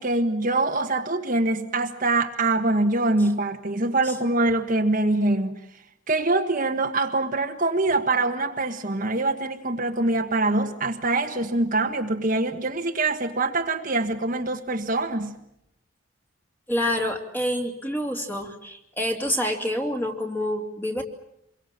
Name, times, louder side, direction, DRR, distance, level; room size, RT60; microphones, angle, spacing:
voice 1, 0.0-5.6 6.1-15.3, right 2 dB, 40° right, 4 dB, 1.5 m, -24 dB
voice 2, 16.7-21.0, equal, 10° left, 3 dB, 2.8 m, -27 dB
26.5 x 23.0 x 7.6 m, 0.80 s
head